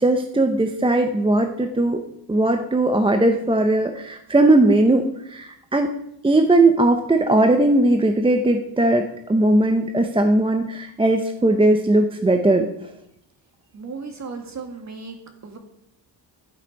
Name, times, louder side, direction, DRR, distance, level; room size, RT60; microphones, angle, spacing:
voice 1, 0.0-2.0 2.3-5.9 6.2-12.7, right 2 dB, 10° right, 6 dB, 0.6 m, -18 dB
voice 2, 13.7-15.2 15.4-15.6, right 4 dB, 40° right, 5 dB, 1.9 m, -35 dB
12.0 x 8.2 x 5.2 m, 0.78 s
wide cardioid pair, 155°, 43 cm